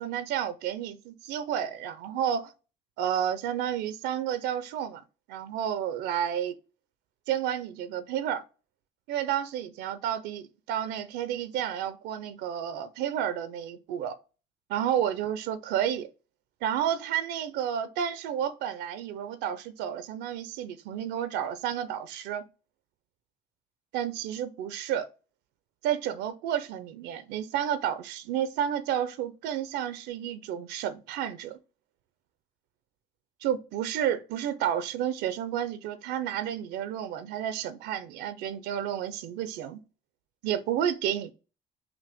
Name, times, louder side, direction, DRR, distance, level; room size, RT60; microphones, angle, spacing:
voice 1, 0.0-2.5 3.0-5.0 5.3-6.5 7.3-8.4 9.1-14.2 14.7-16.1 16.6-22.4 23.9-25.1 25.8-31.6 33.4-39.8 40.4-41.3, right 10 dB, 90° right, 0.5 m, -31 dB
5.8 x 2.2 x 3.4 m
cardioid pair, 110°, 17 cm